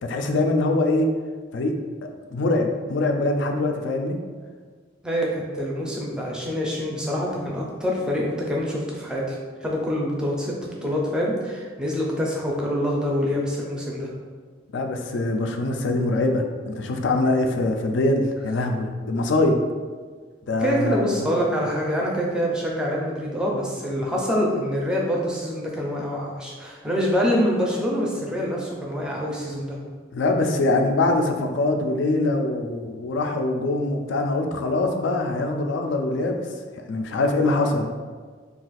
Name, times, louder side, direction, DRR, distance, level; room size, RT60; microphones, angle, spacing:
voice 1, 0.0-1.1 1.5-1.8 2.3-4.2 14.7-19.6 20.5-21.0 30.1-36.4 36.9-37.8, left 2 dB, 80° left, 4 dB, 0.4 m, -23 dB
voice 2, 5.0-10.5 10.8-14.1 20.6-29.8 37.6-37.7, equal, 5° right, -3 dB, 0.4 m, -25 dB
2.4 x 2.3 x 4.0 m, 1.5 s
head